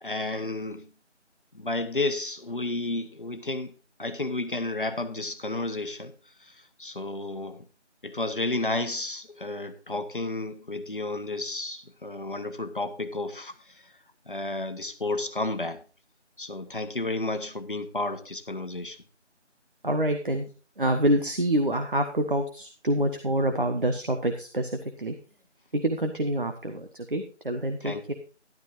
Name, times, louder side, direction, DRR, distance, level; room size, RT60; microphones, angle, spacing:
voice 1, 0.0-0.9 1.5-3.7 4.0-6.1 6.8-7.6 8.0-13.5 14.3-15.8 16.4-19.0 27.8-28.0, left 2 dB, 45° left, 1.2 m, -31 dB
voice 2, 19.8-20.4 20.8-25.1 25.7-28.1, right 1 dB, 45° right, 1.4 m, -26 dB
12.5 x 12.0 x 2.6 m
figure-of-eight pair, 175°, 36 cm